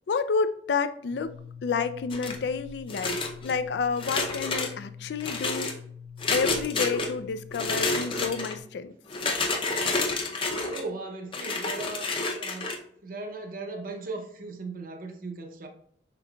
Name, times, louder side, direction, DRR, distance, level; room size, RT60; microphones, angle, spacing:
voice 1, 0.1-1.3 1.6-5.7 6.3-8.9, left 5 dB, 65° left, 0.3 m, -29 dB
sound 1, 1.1-8.6, left 6 dB, 80° left, 1.2 m, -45 dB
sound 2, 2.1-2.5 2.9-3.5 4.0-4.7 5.2-5.7 6.2-7.1 7.5-8.5 9.1-10.8 11.3-12.8, left 3 dB, 30° left, 0.6 m, -29 dB
voice 2, 10.7-12.8 13.0-15.7, right 3 dB, 50° right, 0.7 m, -38 dB
5.7 x 3.7 x 2.3 m
head